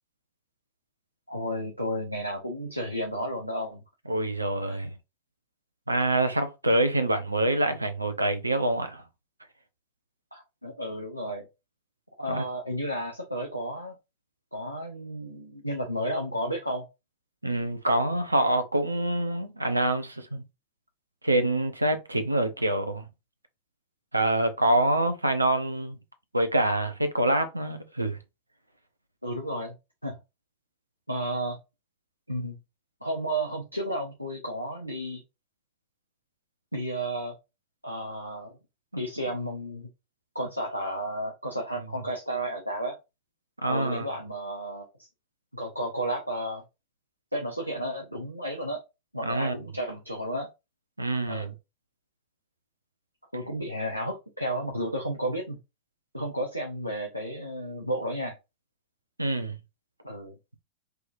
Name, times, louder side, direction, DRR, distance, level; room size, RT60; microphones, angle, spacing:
voice 1, 1.3-3.8 4.7-4.8 10.3-11.5 12.2-13.9 14.5-16.9 29.2-29.7 30.0-30.2 31.1-31.6 32.3-32.6 33.0-35.2 36.7-37.4 37.8-38.5 39.0-39.9 40.3-43.0 43.7-45.1 45.5-46.6 47.3-48.8 49.1-50.5 51.3-51.5 53.3-55.6 56.1-58.4 60.0-60.3, equal, 90° left, 1.0 m, -32 dB
voice 2, 4.1-4.9 5.9-9.0 12.3-12.4 17.4-20.4 21.2-23.1 24.1-26.0 26.3-28.2 43.6-44.1 49.2-49.6 51.0-51.5 59.2-59.6, right 1 dB, 85° right, 0.8 m, -26 dB
4.8 x 3.2 x 2.5 m
figure-of-eight pair, 90°, 0 cm